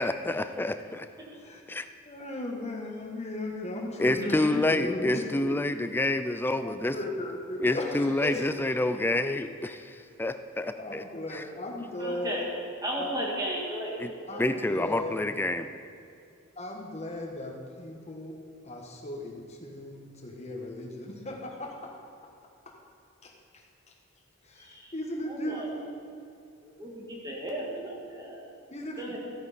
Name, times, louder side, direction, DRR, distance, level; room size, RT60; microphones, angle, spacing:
voice 1, 0.0-1.1 1.7-1.9 4.0-7.0 7.6-11.0 11.3-11.4 14.0-14.1 14.4-15.7, left 2 dB, 10° left, 9 dB, 0.4 m, -28 dB
voice 2, 2.0-5.6 6.6-8.5 10.7-12.5 13.0-13.1 14.3-15.4 16.5-22.0 22.2-22.3 22.6-22.8 23.2-23.3 23.9-24.0 24.4-25.9 28.7-29.2, left 1 dB, 35° left, 1 dB, 1.5 m, -36 dB
voice 3, 4.2-4.5 12.0-12.5 12.8-14.5 24.6-24.9 25.3-25.7 26.6-28.4 29.0-29.2, equal, 20° right, -3 dB, 1.9 m, -35 dB
14.0 x 8.6 x 4.3 m, 2.5 s
head